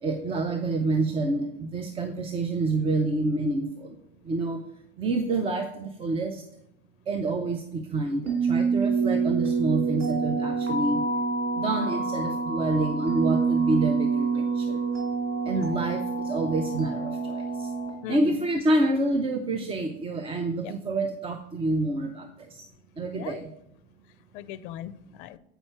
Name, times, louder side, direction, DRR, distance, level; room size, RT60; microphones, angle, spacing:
voice 1, 0.0-3.9 4.3-4.6 5.0-6.4 7.1-11.0 11.6-14.8 15.5-17.7 18.1-22.6 23.0-23.5, right 2 dB, 15° right, 6 dB, 0.5 m, -28 dB
sound 1, 8.3-17.9, right 4 dB, 90° right, 3.2 m, -27 dB
voice 2, 18.0-18.4 20.6-20.7 23.1-23.4 24.3-25.4, left 11 dB, 45° left, 16 dB, 0.6 m, -39 dB
8.0 x 5.4 x 4.5 m, 0.79 s
hypercardioid pair, 110°, 36 cm